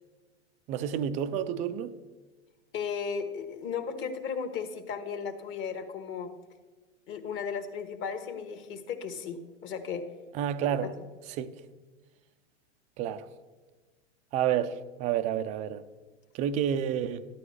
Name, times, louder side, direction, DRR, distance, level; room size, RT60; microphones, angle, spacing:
voice 1, 0.7-1.9 10.3-10.9 11.3-11.6 13.0-13.3 14.3-15.8 16.3-17.3, right 9 dB, 20° right, 0.3 m, -29 dB
voice 2, 2.7-6.3 7.1-10.0, left 6 dB, 35° left, 1.4 m, -35 dB
14.0 x 11.0 x 3.2 m
hypercardioid pair, 125°, 36 cm